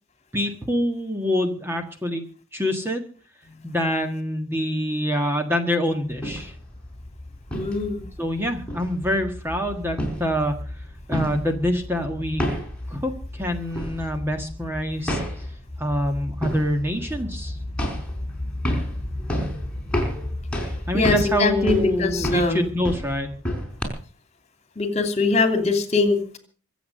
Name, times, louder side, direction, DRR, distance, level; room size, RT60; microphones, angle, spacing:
voice 1, 0.3-2.2 2.5-3.0 3.6-6.5 8.2-10.5 11.1-12.4 12.9-15.2 15.8-17.6 20.9-23.3, equal, 10° right, 4 dB, 1.6 m, -25 dB
sound 1, 6.1-23.8, equal, 5° left, 4.8 m, -31 dB
voice 2, 7.5-8.0 20.9-22.7 24.8-26.4, left 3 dB, 30° left, 7 dB, 2.7 m, -22 dB
24.5 x 8.2 x 6.5 m, 0.41 s
head